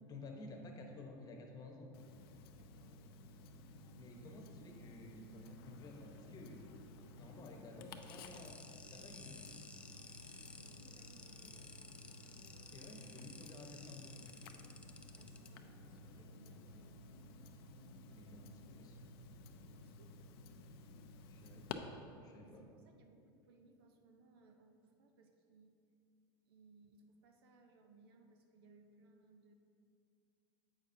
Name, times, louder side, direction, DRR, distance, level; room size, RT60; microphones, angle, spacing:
voice 1, 0.1-1.9 4.0-6.6 7.2-8.6 8.9-9.5 12.6-14.2 18.1-19.1 21.3-21.7 22.2-22.6, left 2 dB, 30° left, 2 dB, 1.0 m, -53 dB
Tick-tock, 1.9-21.7, left 3 dB, 75° left, 0.5 m, -55 dB
voice 2, 2.6-3.1 7.6-8.5 10.6-11.7 15.2-17.0 19.7-20.1 22.4-25.8 26.4-29.5, right 3 dB, 80° right, 4 dB, 0.7 m, -66 dB
sound 1, 3.5-18.7, right 1 dB, 60° right, 1.2 m, -67 dB
sound 2, 8.0-15.5, left 3 dB, 10° left, 0.4 m, -55 dB
8.0 x 6.0 x 2.7 m, 2.6 s
hypercardioid pair, 105°, 13 cm